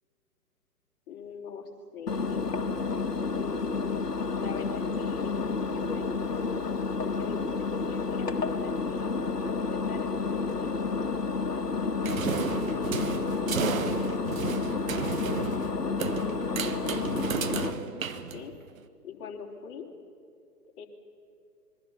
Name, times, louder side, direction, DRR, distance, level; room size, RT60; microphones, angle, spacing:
voice 1, 1.1-2.5 3.3-6.6 7.0-10.8 12.2-14.4 14.9-15.2 15.5-16.4 16.8-18.5 19.0-19.9 20.8-20.9, left 5 dB, 35° left, -1 dB, 3.7 m, -43 dB
Engine, 2.1-17.7, left 4 dB, 80° left, 1.6 m, -30 dB
sound 1, 12.0-18.8, right 7 dB, 55° right, 1.3 m, -33 dB
27.0 x 22.5 x 5.7 m, 2.4 s
figure-of-eight pair, 125°, 47 cm